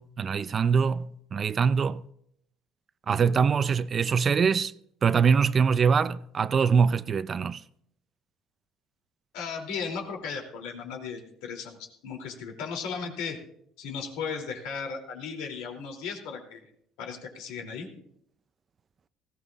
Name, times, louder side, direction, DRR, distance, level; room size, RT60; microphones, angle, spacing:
voice 1, 0.0-2.0 3.1-4.7 5.0-7.6, right 6 dB, 30° right, 0.4 m, -23 dB
voice 2, 9.3-13.4 13.8-16.7 17.0-17.9, left 5 dB, 85° left, 3.0 m, -36 dB
19.5 x 16.0 x 2.5 m
cardioid pair, 130°, 0 cm